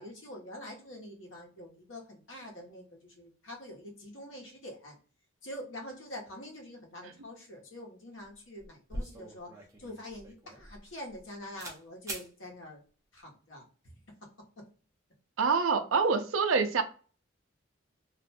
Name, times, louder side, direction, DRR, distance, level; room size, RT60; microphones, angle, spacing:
voice 1, 0.0-4.9 5.4-12.8 13.1-13.9, left 1 dB, 75° left, 1.1 m, -45 dB
sound 1, 8.3-8.4 8.6-11.2 11.6-11.8 12.1-12.3, right 1 dB, 15° right, 0.7 m, -42 dB
voice 2, 15.4-16.8, right 5 dB, 90° right, 0.5 m, -26 dB
2.6 x 2.2 x 4.0 m
head